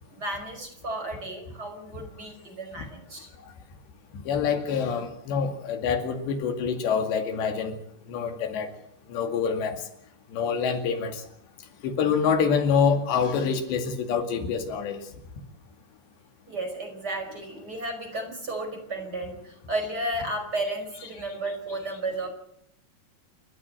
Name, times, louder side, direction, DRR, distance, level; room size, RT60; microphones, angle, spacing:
voice 1, 0.1-3.3 16.5-22.3, right 1 dB, 25° right, 4 dB, 5.5 m, -33 dB
voice 2, 4.3-7.8 8.1-8.7 9.1-9.8 10.3-11.2 11.8-15.0, left 6 dB, 90° left, 6 dB, 4.5 m, -26 dB
28.5 x 14.0 x 7.8 m, 0.71 s
omnidirectional pair, 4.8 m